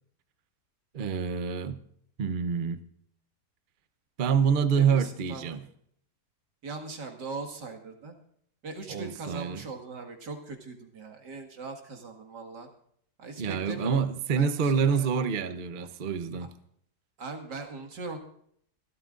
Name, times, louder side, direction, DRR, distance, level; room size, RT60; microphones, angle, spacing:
voice 1, 0.9-1.8 2.2-2.8 4.2-5.6 8.9-9.6 13.4-16.5, right 6 dB, 45° right, 11 dB, 0.7 m, -27 dB
voice 2, 4.7-5.6 6.6-8.1 8.6-12.7 13.2-14.1 14.4-15.1 17.2-18.2, right 3 dB, 90° right, 4 dB, 2.6 m, -40 dB
24.5 x 13.0 x 2.5 m, 0.66 s
omnidirectional pair, 1.8 m